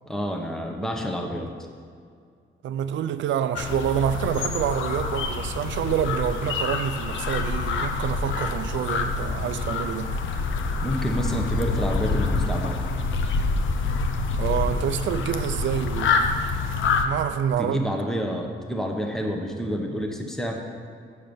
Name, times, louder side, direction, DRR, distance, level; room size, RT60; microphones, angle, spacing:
voice 1, 0.1-1.5 10.8-12.8 17.6-20.7, equal, ahead, 0.9 m, -28 dB
voice 2, 2.6-10.1 14.4-16.4 17.0-17.9, right 9 dB, 70° right, 0.5 m, -27 dB
sound 1, 3.6-17.1, left 4 dB, 75° left, 0.8 m, -26 dB
7.7 x 6.5 x 6.9 m
cardioid pair, 145°, 20 cm